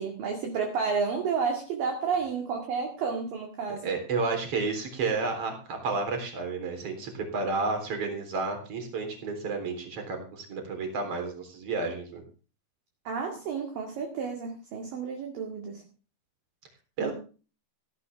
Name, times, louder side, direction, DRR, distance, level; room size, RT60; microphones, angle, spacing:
voice 1, 0.0-3.9 13.0-15.8 17.0-17.1, right 5 dB, 55° right, 2 dB, 3.3 m, -31 dB
voice 2, 3.8-12.2 17.0-17.1, right 4 dB, 35° right, 4 dB, 4.2 m, -31 dB
16.5 x 12.0 x 3.5 m, 0.36 s
omnidirectional pair, 5.5 m